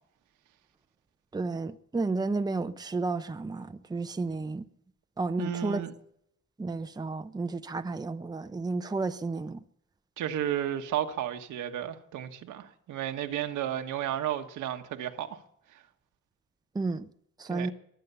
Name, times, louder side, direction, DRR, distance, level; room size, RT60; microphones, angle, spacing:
voice 1, 1.3-4.6 5.2-5.8 6.6-9.6 16.7-17.1 17.4-17.7, right 3 dB, 15° right, 0.7 m, -32 dB
voice 2, 5.4-5.9 10.2-15.4 15.7-15.8 17.5-17.7, right 11 dB, 80° right, 1.5 m, -33 dB
22.0 x 8.5 x 6.9 m
cardioid pair, 90°, 30 cm